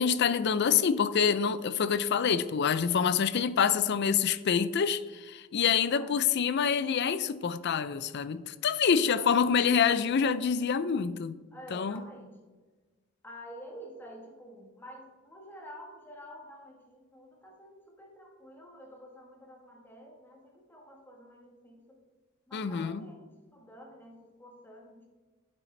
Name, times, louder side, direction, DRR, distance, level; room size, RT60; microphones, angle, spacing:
voice 1, 0.0-11.4 11.7-12.0 22.5-23.0, left 7 dB, 55° left, 0.4 m, -26 dB
voice 2, 9.0-9.7 11.5-12.5 13.2-22.0 22.5-23.2 23.5-25.1, equal, 10° left, 1.3 m, -49 dB
8.9 x 8.0 x 3.2 m
head